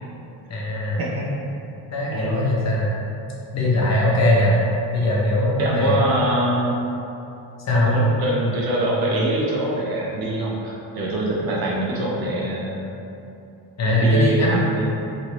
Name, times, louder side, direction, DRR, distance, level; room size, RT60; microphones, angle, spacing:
voice 1, 0.5-1.0 1.9-2.9 3.5-4.6 4.9-6.0 7.7-7.9 13.8-14.6, left 1 dB, 40° left, -5 dB, 0.6 m, -20 dB
voice 2, 2.1-2.4 5.6-6.8 7.7-12.9 13.8-14.8, right 1 dB, 55° right, -4 dB, 0.8 m, -24 dB
3.0 x 2.6 x 3.0 m, 2.8 s
cardioid pair, 125°, 44 cm